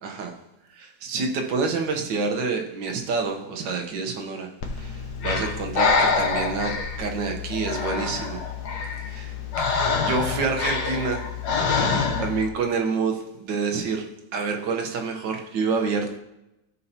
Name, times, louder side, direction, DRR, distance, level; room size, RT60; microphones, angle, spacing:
voice 1, 0.0-0.3 0.8-4.5 4.8-8.4 9.1-9.7 10.0-11.5 12.2-16.2, right 4 dB, 75° right, 3 dB, 1.7 m, -28 dB
Breathing, 4.6-12.5, left 5 dB, 65° left, 1.3 m, -26 dB
14.0 x 5.5 x 2.8 m, 0.91 s
omnidirectional pair, 2.0 m